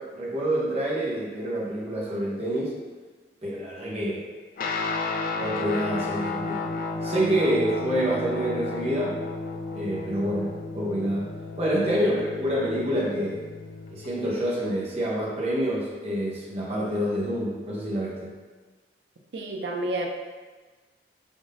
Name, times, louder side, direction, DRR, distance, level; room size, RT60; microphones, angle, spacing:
voice 1, 0.0-2.8 3.4-4.3 5.4-6.6 7.0-9.2 9.7-11.3 11.6-13.4 13.9-18.3, equal, 35° right, -4 dB, 0.8 m, -27 dB
Guitar, 4.6-14.2, left 3 dB, 50° left, 0.3 m, -33 dB
voice 2, 19.3-20.1, right 1 dB, 85° right, 2 dB, 0.5 m, -30 dB
3.6 x 2.6 x 3.8 m, 1.3 s
head